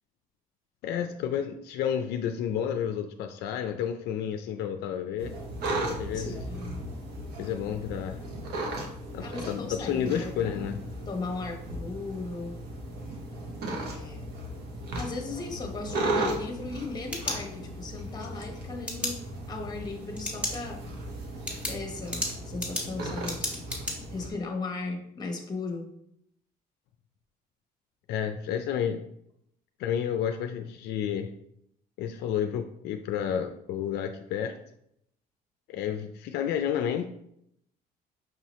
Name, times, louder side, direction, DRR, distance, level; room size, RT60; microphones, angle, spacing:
voice 1, 0.8-5.4 6.0-6.4 7.4-8.2 9.1-10.8 28.1-29.1 29.8-31.3 32.0-34.6 35.7-37.0, left 9 dB, 75° left, 6 dB, 0.4 m, -31 dB
sound 1, 5.2-24.3, right 1 dB, 70° right, 1.0 m, -36 dB
voice 2, 6.1-6.8 9.2-10.7 11.1-12.6 13.7-14.3 15.0-20.8 21.7-23.6 24.1-25.9, left 3 dB, 25° left, 3 dB, 1.0 m, -37 dB
sound 2, 16.8-17.9 18.9-19.1 20.2-20.6 21.0-21.1 21.5-23.9, left 1 dB, 5° right, 1.5 m, -33 dB
6.0 x 2.8 x 3.1 m, 0.73 s
cardioid pair, 110°, 17 cm